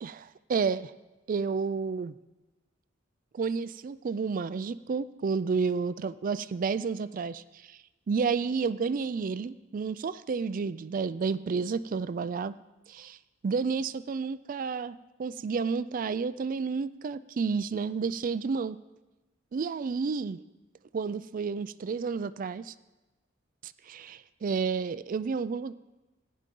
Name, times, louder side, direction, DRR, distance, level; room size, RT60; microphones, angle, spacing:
voice 1, 0.0-0.9 1.3-2.1 3.3-7.4 7.7-7.8 8.1-12.5 12.9-13.2 13.4-18.8 19.5-20.4 20.9-22.7 23.9-25.7, right 5 dB, 45° right, 16 dB, 0.3 m, -31 dB
16.0 x 10.5 x 3.8 m, 1.1 s
head